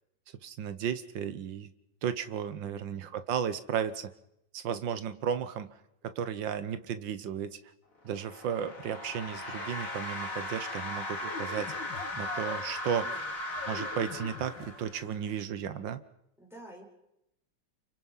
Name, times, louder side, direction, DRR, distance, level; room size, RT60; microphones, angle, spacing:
voice 1, 0.4-1.7 2.0-4.1 4.5-5.7 6.0-7.6 8.0-11.7 12.2-13.1 13.7-16.0, right 8 dB, 80° right, 12 dB, 1.8 m, -34 dB
voice 2, 2.6-3.2 12.9-13.3 16.4-16.8, right 1 dB, ahead, -2 dB, 5.5 m, -51 dB
sound 1, 8.0-15.1, left 1 dB, 45° left, 2.9 m, -38 dB
sound 2, 9.0-15.4, left 6 dB, 75° left, 2.3 m, -46 dB
27.5 x 24.5 x 5.7 m, 0.82 s
omnidirectional pair, 2.0 m